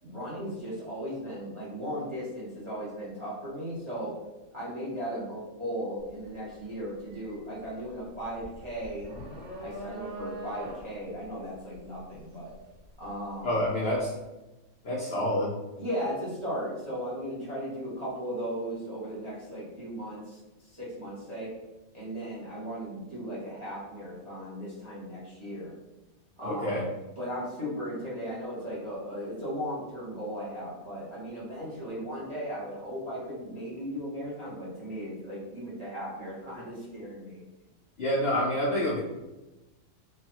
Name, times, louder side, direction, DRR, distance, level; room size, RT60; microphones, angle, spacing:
voice 1, 0.0-4.1 4.5-9.1 9.6-12.5 13.0-13.5 15.7-21.5 21.9-25.7 26.4-26.8 27.2-37.4, equal, 25° right, -8 dB, 0.6 m, -36 dB
sound 1, 6.0-6.3 6.6-13.6, right 1 dB, 75° right, 1.7 m, -42 dB
voice 2, 13.4-14.1 14.8-15.5 26.4-26.8 38.0-39.0, left 1 dB, 75° left, -5 dB, 0.5 m, -27 dB
3.2 x 2.3 x 2.9 m, 1.1 s
omnidirectional pair, 1.7 m